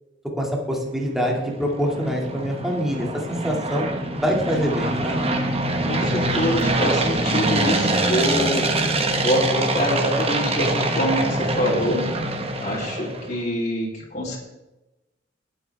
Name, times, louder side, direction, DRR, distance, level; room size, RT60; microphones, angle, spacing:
voice 1, 0.4-3.9 4.2-5.2, equal, ahead, -1 dB, 2.1 m, -25 dB
sound 1, 1.1-13.4, right 2 dB, 35° right, 1.3 m, -24 dB
voice 2, 5.8-12.1 12.6-14.4, equal, 40° left, -4 dB, 3.1 m, -25 dB
20.5 x 7.7 x 3.4 m, 1.0 s
head